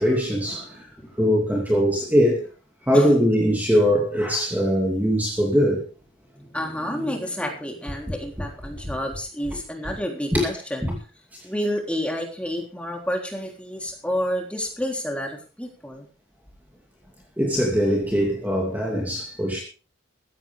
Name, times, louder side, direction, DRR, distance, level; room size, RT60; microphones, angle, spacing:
voice 1, 0.0-0.9 1.2-2.5 2.9-5.9 8.8-8.9 10.3-10.5 10.8-11.0 17.4-19.6, equal, 10° right, 2.6 m, -21 dB
voice 2, 6.3-10.9 11.4-16.1, equal, 5° left, 3.5 m, -30 dB
15.0 x 15.0 x 3.6 m
head